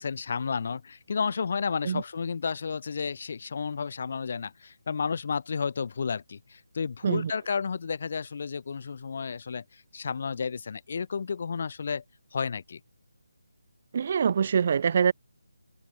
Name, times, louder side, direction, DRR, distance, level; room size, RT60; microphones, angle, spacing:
voice 1, 0.0-12.0 12.3-12.8, left 5 dB, 45° left, 4.7 m, -32 dB
voice 2, 13.9-15.1, right 7 dB, 40° right, 0.6 m, -24 dB
figure-of-eight pair, 165°, 0 cm